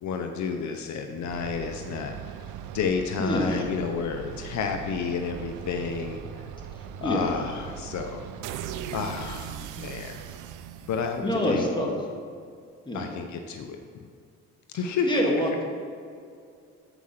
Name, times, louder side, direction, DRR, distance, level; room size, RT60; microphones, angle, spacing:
voice 1, 0.0-2.1 2.7-6.4 7.0-8.2 8.9-10.2 10.9-11.7 12.9-14.1 14.7-15.2, left 5 dB, 70° left, 5 dB, 0.7 m, -31 dB
sound 1, 1.3-11.6, right 9 dB, 90° right, 0.5 m, -39 dB
voice 2, 3.2-3.7 7.0-7.3 11.2-11.9 12.9-13.0 15.1-15.6, equal, 15° left, -2 dB, 1.8 m, -26 dB
8.1 x 4.8 x 5.7 m, 2.3 s
cardioid pair, 90°, 30 cm